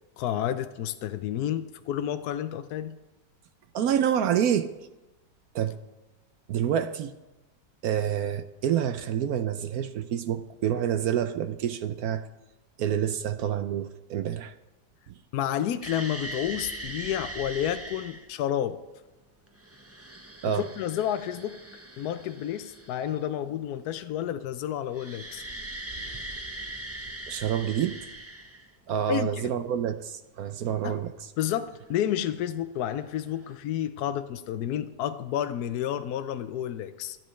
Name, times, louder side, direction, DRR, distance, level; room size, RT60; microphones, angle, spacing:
voice 1, 0.2-3.0 15.3-18.8 20.5-21.6 22.0-25.4 29.1-29.5 30.8-31.0 31.4-37.2, left 10 dB, 70° left, 10 dB, 1.0 m, -30 dB
voice 2, 3.7-4.7 5.5-5.8 6.5-7.1 7.8-12.3 12.8-14.5 15.1-15.2 20.4-20.7 27.3-28.0 28.9-31.1, right 9 dB, 70° right, 11 dB, 0.9 m, -27 dB
sound 1, 15.8-18.3 19.5-23.3 24.9-28.9 31.9-32.0 33.1-33.5, right 1 dB, 20° right, 0.3 m, -40 dB
23.5 x 9.2 x 3.2 m, 1.1 s
omnidirectional pair, 1.9 m